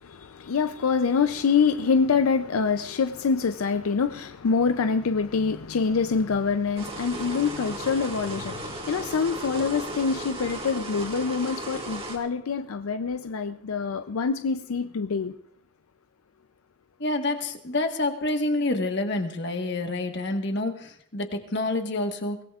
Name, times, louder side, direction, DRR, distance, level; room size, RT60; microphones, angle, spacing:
voice 1, 0.0-15.3, left 5 dB, 90° left, 0.5 m, -25 dB
sound 1, 6.8-12.2, right 2 dB, 25° right, 1.9 m, -36 dB
voice 2, 17.0-22.4, left 2 dB, 55° left, 1.4 m, -28 dB
23.5 x 17.5 x 2.4 m
head